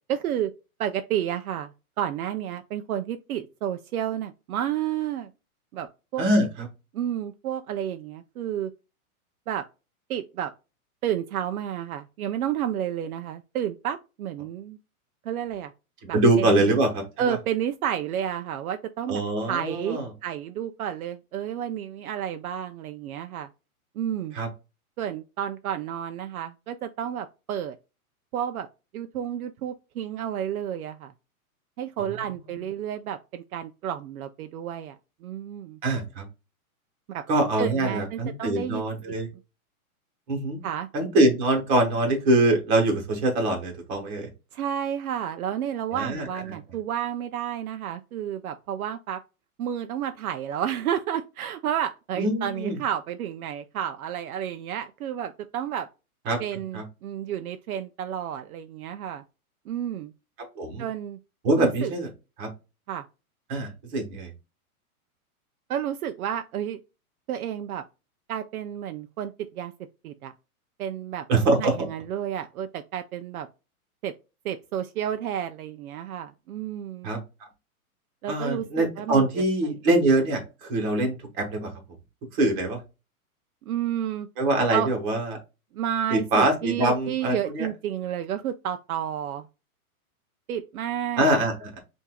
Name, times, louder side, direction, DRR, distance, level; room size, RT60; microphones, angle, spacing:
voice 1, 0.1-0.5 0.8-5.3 5.7-5.9 6.1-6.2 6.9-8.7 9.5-9.6 10.1-10.5 11.0-14.8 15.2-15.7 16.1-16.7 17.2-19.2 19.5-23.5 24.0-24.4 25.0-27.8 28.3-28.7 28.9-31.1 31.8-35.8 37.1-37.2 37.6-39.2 40.6-40.9 44.5-49.2 49.6-55.9 56.4-59.2 59.7-60.1 60.8-61.2 61.6-61.9 62.9-63.0 65.7-66.8 67.3-67.8 68.3-69.7 70.0-70.3 70.8-71.3 71.6-73.5 74.0-74.1 74.4-77.1 78.2-79.7 83.6-84.3 84.7-84.9 85.7-89.5 90.5-91.3, right 10 dB, 70° right, 0.6 m, -31 dB
voice 2, 16.1-17.4 19.1-20.0 24.3-24.5 32.4-32.6 35.8-36.2 37.3-39.3 40.3-40.6 40.9-44.3 45.9-46.3 52.2-52.8 56.3-56.4 56.7-56.8 60.6-60.9 61.4-62.1 62.4-62.5 63.5-64.3 71.3-71.7 77.0-77.2 78.3-81.7 82.3-82.8 84.4-85.4 86.1-87.7 91.2-91.8, right 2 dB, 30° right, 1.4 m, -24 dB
5.6 x 2.7 x 2.2 m
hypercardioid pair, 160°, 44 cm